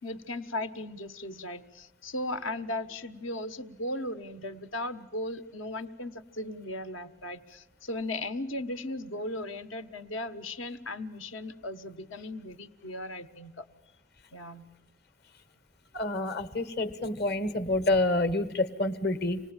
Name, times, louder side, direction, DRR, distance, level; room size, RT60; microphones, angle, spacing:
voice 1, 0.0-13.6 14.3-14.7, left 1 dB, 75° left, 9 dB, 1.4 m, -37 dB
voice 2, 15.9-19.4, left 2 dB, 50° left, 12 dB, 1.4 m, -28 dB
27.0 x 19.5 x 9.1 m, 0.99 s
head